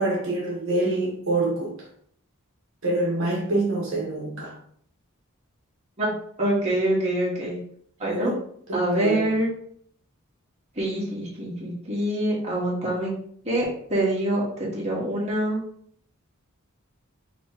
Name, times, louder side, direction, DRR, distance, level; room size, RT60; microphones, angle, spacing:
voice 1, 0.0-1.8 2.8-4.5 8.0-8.3 8.7-9.3, right 2 dB, 65° right, -3 dB, 1.2 m, -26 dB
voice 2, 6.4-7.6 8.0-8.3 8.7-9.5 10.8-13.1 13.4-15.6, right 1 dB, 30° right, -6 dB, 1.5 m, -25 dB
5.4 x 3.0 x 2.9 m, 0.63 s
head